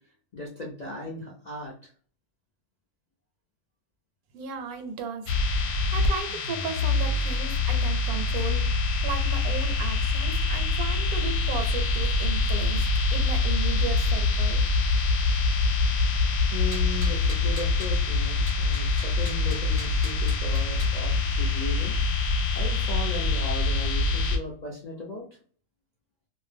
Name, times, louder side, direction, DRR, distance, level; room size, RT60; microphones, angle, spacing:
voice 1, 0.3-1.7 16.5-21.9 22.5-25.2, left 2 dB, 60° left, -4 dB, 0.4 m, -37 dB
voice 2, 4.3-5.3 5.6-8.7 9.0-14.6, right 5 dB, 75° right, 6 dB, 1.1 m, -35 dB
sound 1, 5.3-24.4, left 3 dB, 75° left, 1.0 m, -25 dB
sound 2, 16.7-18.0 18.5-21.0, equal, 20° right, 0.5 m, -43 dB
2.6 x 2.1 x 3.2 m, 0.44 s
omnidirectional pair, 1.6 m